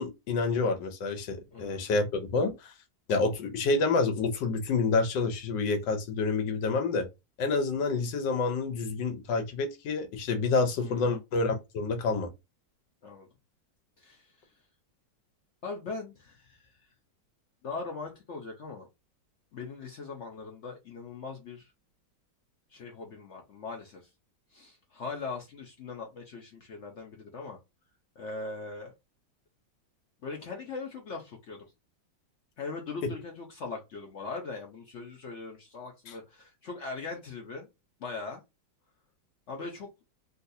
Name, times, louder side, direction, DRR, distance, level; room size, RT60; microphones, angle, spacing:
voice 1, 0.0-2.7 3.1-7.1 7.4-12.3, left 3 dB, 80° left, 1.5 m, -28 dB
voice 2, 1.5-1.8 10.8-11.2 13.0-13.3 14.0-14.6 15.6-16.9 17.6-18.9 19.5-21.7 22.7-24.1 24.5-27.6 28.2-28.9 30.2-31.7 32.6-37.7 38.0-38.4 39.5-39.9, left 4 dB, 60° left, 0.7 m, -40 dB
3.9 x 2.3 x 2.6 m
omnidirectional pair, 1.9 m